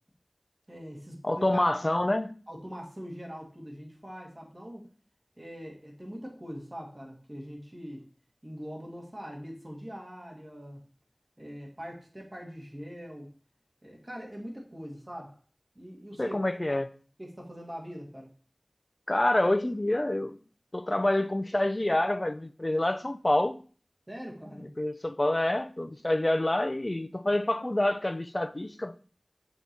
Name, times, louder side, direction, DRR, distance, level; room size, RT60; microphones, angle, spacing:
voice 1, 0.7-1.6 2.5-4.9 5.4-8.0 8.4-10.8 11.4-13.3 13.8-15.4 15.8-16.4 16.7-16.8 17.2-18.3 24.1-24.7, equal, 30° right, 1.9 m, -42 dB
voice 2, 1.2-2.3 16.2-16.9 19.1-20.4 20.7-23.6 24.6-28.9, left 1 dB, 35° left, 0.4 m, -27 dB
6.3 x 3.0 x 5.3 m
wide cardioid pair, 55°, 0 cm